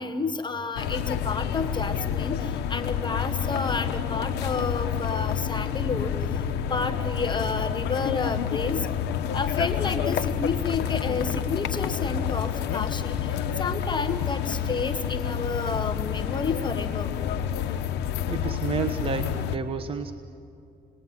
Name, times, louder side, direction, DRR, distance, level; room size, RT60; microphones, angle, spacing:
voice 1, 0.0-6.1 6.7-8.9 9.3-17.1, left 4 dB, 25° left, 8 dB, 1.2 m, -30 dB
sound 1, 0.8-19.6, left 8 dB, 80° left, 1.1 m, -29 dB
voice 2, 18.3-20.1, right 6 dB, 35° right, 5 dB, 1.2 m, -30 dB
27.0 x 21.0 x 9.7 m, 2.5 s
cardioid pair, 110°, 17 cm